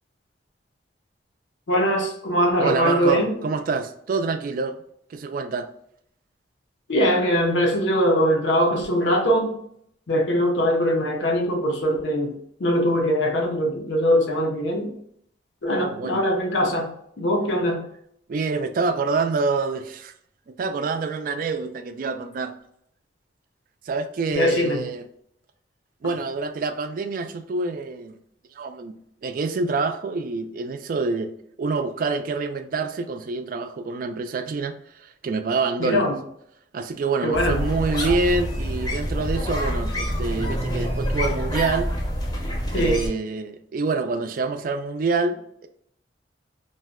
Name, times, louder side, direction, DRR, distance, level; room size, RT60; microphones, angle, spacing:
voice 1, 1.7-3.4 6.9-9.5 10.1-12.3 12.6-14.9 15.6-17.8 24.3-24.8 35.8-36.2 37.2-37.6 42.7-43.0, equal, 80° left, 0.6 m, -22 dB
voice 2, 2.6-4.8 5.1-5.7 15.7-16.2 18.3-20.1 20.6-22.5 23.9-25.0 26.0-28.2 28.6-28.9 29.2-31.3 31.6-34.8 35.0-36.1 36.7-41.9 42.7-45.7, right 4 dB, 50° right, 0.3 m, -26 dB
sound 1, 37.3-43.1, equal, 20° left, 0.6 m, -26 dB
2.6 x 2.1 x 3.6 m
head